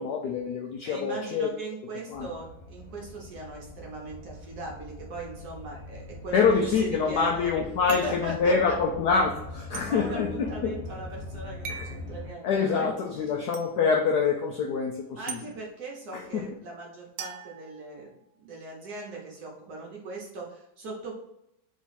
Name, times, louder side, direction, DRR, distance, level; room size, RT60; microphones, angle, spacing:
voice 1, 0.0-1.5 2.1-2.3 6.3-10.8 11.7-11.9 12.4-15.4 16.1-16.5, left 5 dB, 75° left, 1 dB, 0.9 m, -26 dB
voice 2, 0.8-7.5 7.9-8.5 9.9-12.9 15.2-21.1, right 2 dB, 55° right, -2 dB, 1.3 m, -39 dB
sound 1, 2.1-12.3, left 2 dB, 50° left, 1.3 m, -42 dB
sound 2, 7.9-8.3 9.7-9.9 11.6-12.0 13.5-13.7 15.3-15.4 17.2-18.3, right 6 dB, 85° right, 1.4 m, -39 dB
3.9 x 3.0 x 4.0 m, 0.81 s
omnidirectional pair, 2.2 m